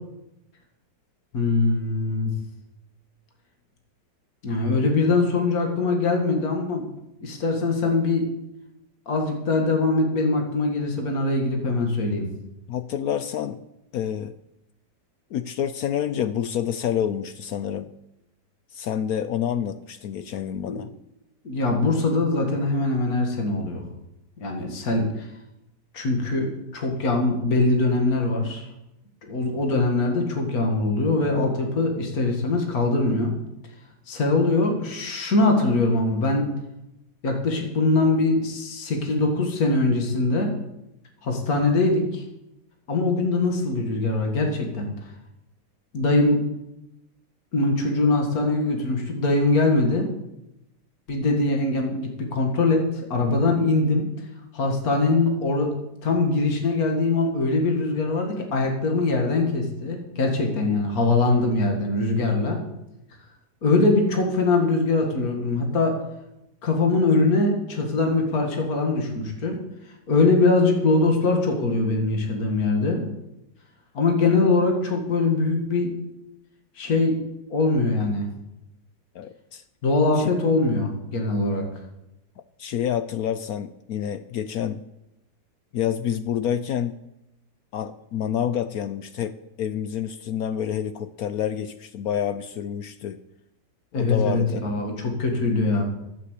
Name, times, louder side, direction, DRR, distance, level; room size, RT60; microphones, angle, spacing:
voice 1, 1.3-2.3 4.4-6.9 7.2-8.2 9.1-12.2 20.7-20.8 21.4-23.9 24.4-25.3 25.9-28.7 29.2-33.3 34.1-36.5 37.2-40.5 41.2-42.2 42.9-45.1 45.9-46.4 47.5-50.1 51.1-52.8 53.1-54.1 54.5-55.7 56.0-62.6 63.6-66.0 66.6-69.6 70.1-73.0 73.9-75.9 76.8-77.2 77.5-78.3 79.8-81.6 93.9-95.8, left 3 dB, 55° left, 2 dB, 2.3 m, -22 dB
voice 2, 12.7-13.6 13.9-14.3 15.3-17.9 18.7-20.9 79.1-79.6 80.2-80.3 82.4-84.8 85.7-87.0 87.7-93.2 93.9-94.7, left 9 dB, 70° left, 12 dB, 0.9 m, -28 dB
11.5 x 7.6 x 8.1 m, 0.88 s
omnidirectional pair, 1.9 m